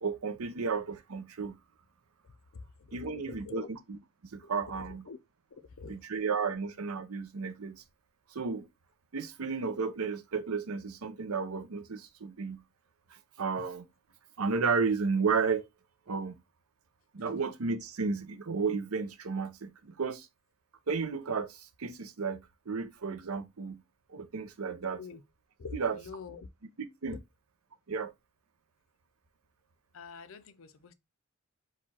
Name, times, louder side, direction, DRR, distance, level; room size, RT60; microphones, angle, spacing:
voice 1, 0.0-1.5 2.9-4.0 4.3-5.0 5.9-7.8 8.3-8.7 9.1-12.6 13.1-13.9 14.4-15.7 16.1-16.4 17.1-20.3 20.9-23.8 24.1-25.0 25.7-26.0 26.8-27.2 27.9-28.1, right 5 dB, 85° right, 0.7 m, -33 dB
voice 2, 2.5-3.7 4.7-5.2 5.8-6.0 25.0-25.2 25.6-26.5 29.9-30.9, left 4 dB, 65° left, 0.5 m, -45 dB
4.9 x 2.4 x 4.1 m
head